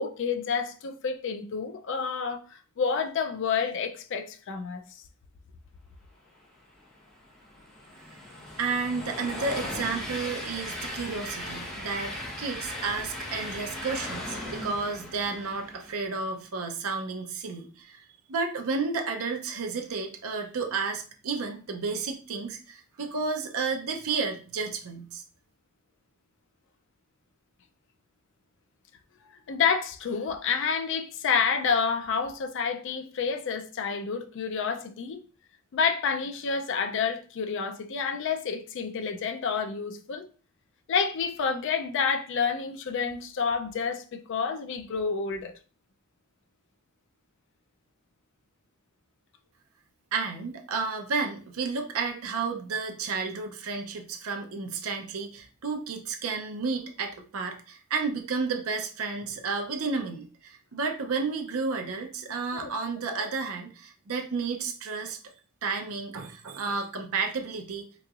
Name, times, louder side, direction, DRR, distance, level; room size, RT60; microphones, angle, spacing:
voice 1, 0.0-4.8 29.5-35.2 35.7-40.3 40.9-45.5 62.5-62.7 63.1-63.3, left 6 dB, 60° left, 0.4 m, -29 dB
Train, 6.8-16.2, left 1 dB, ahead, 1.2 m, -38 dB
voice 2, 8.6-12.1 12.4-18.0 18.3-25.2 50.1-65.2 65.6-67.9, right 4 dB, 70° right, 0.5 m, -32 dB
3.7 x 3.0 x 2.3 m
head